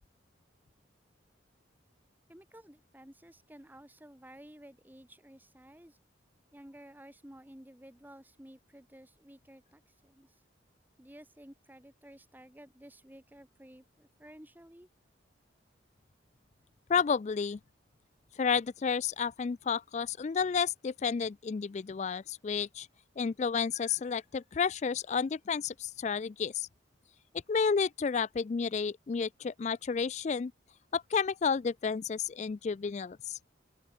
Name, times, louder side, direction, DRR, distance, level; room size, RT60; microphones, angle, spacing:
voice 1, 2.3-6.0 6.5-10.4 11.0-14.9, right 1 dB, 10° right, 1.5 m, -53 dB
voice 2, 16.9-17.6 18.4-22.9 23.2-26.7 27.5-30.5 30.9-33.4, left 6 dB, 35° left, 0.3 m, -31 dB
open air
head